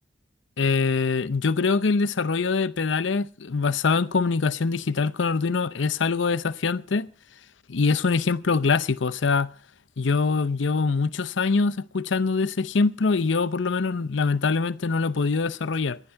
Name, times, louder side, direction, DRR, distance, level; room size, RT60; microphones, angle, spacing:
voice 1, 0.6-7.1 7.7-9.5 10.0-16.0, left 4 dB, 70° left, 0.6 m, -24 dB
19.0 x 11.0 x 4.5 m
head